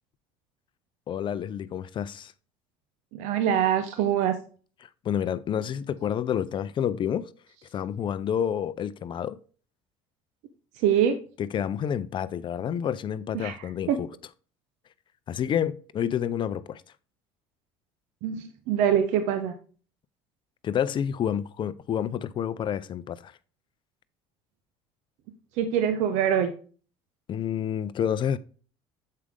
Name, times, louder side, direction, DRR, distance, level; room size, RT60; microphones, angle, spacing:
voice 1, 1.1-2.3 4.8-7.3 7.7-9.4 11.4-14.1 15.3-16.8 20.6-23.3 27.3-28.4, left 9 dB, 40° left, 0.5 m, -29 dB
voice 2, 3.1-4.4 10.8-11.2 13.3-13.6 13.9-14.0 18.2-19.5 25.6-26.5, right 9 dB, 75° right, 0.8 m, -24 dB
7.6 x 4.8 x 3.6 m
supercardioid pair, 95°, 12 cm